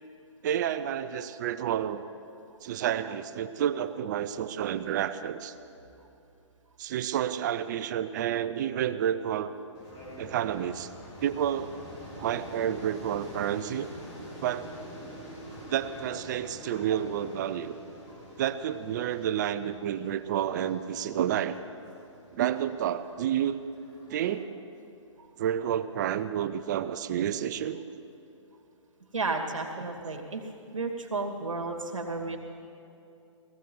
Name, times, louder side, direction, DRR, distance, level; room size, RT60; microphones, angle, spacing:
voice 1, 0.4-2.1 2.6-5.5 6.8-9.5 10.2-10.9 11.2-11.7 12.2-13.9 14.4-14.7 15.7-17.7 18.4-21.6 22.3-23.6 24.1-24.5 25.4-27.8, right 10 dB, 35° right, 12 dB, 0.6 m, -30 dB
sound 1, 9.7-24.4, equal, 25° left, 4.1 m, -46 dB
voice 2, 29.1-30.4 30.7-32.4, right 3 dB, 85° right, 2 dB, 2.4 m, -32 dB
18.5 x 15.5 x 4.7 m, 2.7 s
hypercardioid pair, 145°, 16 cm